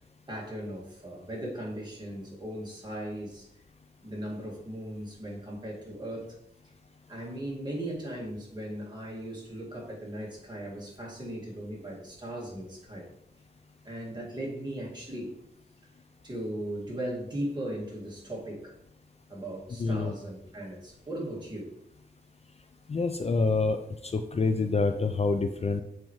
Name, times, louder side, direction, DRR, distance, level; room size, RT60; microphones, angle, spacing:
voice 1, 0.3-3.5 4.0-6.3 7.1-13.1 13.8-15.3 16.2-18.7 19.3-21.7, right 1 dB, 25° right, -4 dB, 2.0 m, -38 dB
voice 2, 19.8-20.1 22.9-23.8 24.0-25.8, left 3 dB, 40° left, 7 dB, 0.5 m, -27 dB
7.4 x 4.6 x 3.1 m, 0.79 s
wide cardioid pair, 85°, 17 cm